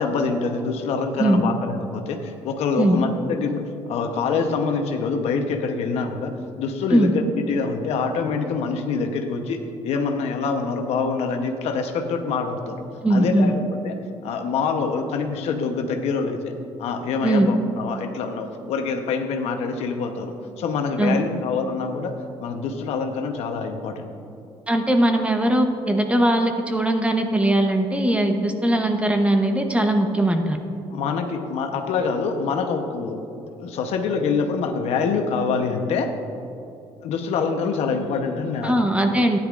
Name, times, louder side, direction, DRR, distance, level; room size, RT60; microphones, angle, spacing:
voice 1, 0.0-3.6 3.9-9.6 9.8-12.8 13.1-13.5 13.8-16.5 16.8-22.1 22.4-24.1 30.9-33.2 33.6-36.1 37.0-38.8, left 5 dB, 75° left, 5 dB, 0.9 m, -25 dB
voice 2, 13.0-13.5 17.2-17.5 21.0-21.2 24.7-30.6 38.6-39.4, right 1 dB, 10° right, 5 dB, 0.9 m, -20 dB
13.0 x 10.0 x 2.5 m, 2.6 s
cardioid pair, 95°, 11 cm